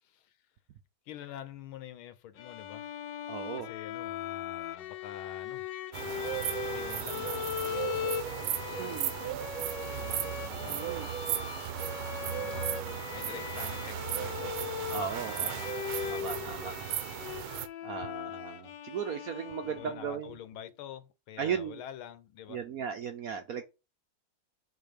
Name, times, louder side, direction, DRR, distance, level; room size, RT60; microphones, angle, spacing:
voice 1, 0.1-0.5 1.0-3.0 3.6-5.7 6.0-8.2 8.5-9.0 9.9-11.1 12.2-14.6 15.3-15.6 19.6-22.6, left 10 dB, 90° left, 1.7 m, -47 dB
Bowed string instrument, 2.4-20.2, left 9 dB, 70° left, 1.3 m, -39 dB
voice 2, 3.3-3.7 8.8-9.1 10.7-11.1 14.9-15.7 16.0-16.7 17.8-20.3 21.4-21.8 22.5-23.6, right 7 dB, 65° right, 0.9 m, -36 dB
sound 1, 5.9-17.7, right 10 dB, 85° right, 1.5 m, -36 dB
7.1 x 4.0 x 5.1 m
omnidirectional pair, 2.2 m